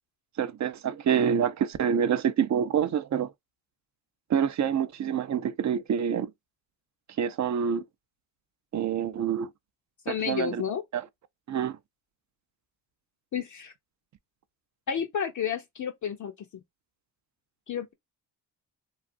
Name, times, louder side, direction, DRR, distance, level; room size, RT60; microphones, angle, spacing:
voice 1, 0.4-3.3 4.3-6.3 7.2-7.8 8.7-9.5 10.1-10.6 10.9-11.1 11.5-11.8, right 8 dB, 40° right, 0.5 m, -27 dB
voice 2, 10.1-10.8 13.3-13.7 14.9-16.3 17.7-17.9, left 8 dB, 40° left, 0.5 m, -31 dB
2.4 x 2.4 x 2.5 m
supercardioid pair, 50°, 45 cm